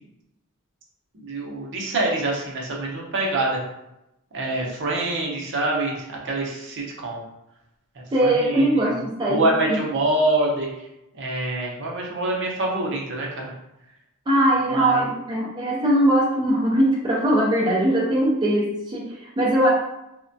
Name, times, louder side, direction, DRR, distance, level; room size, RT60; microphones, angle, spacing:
voice 1, 1.1-3.6 4.3-7.2 8.2-8.9 9.3-10.9 11.1-13.5 14.7-15.1, right 2 dB, 55° right, -2 dB, 0.7 m, -25 dB
voice 2, 8.1-9.8 14.3-19.7, right 1 dB, 20° right, -5 dB, 0.4 m, -21 dB
3.5 x 2.1 x 2.6 m, 0.88 s
head